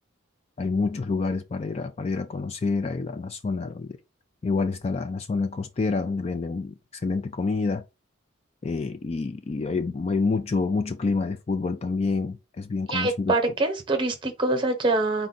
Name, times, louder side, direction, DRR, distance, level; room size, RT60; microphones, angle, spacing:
voice 1, 0.6-4.0 4.4-6.7 7.0-7.8 8.6-13.4, left 4 dB, 30° left, 0.3 m, -27 dB
voice 2, 12.9-15.3, right 2 dB, 25° right, 0.9 m, -24 dB
4.3 x 2.4 x 3.9 m
head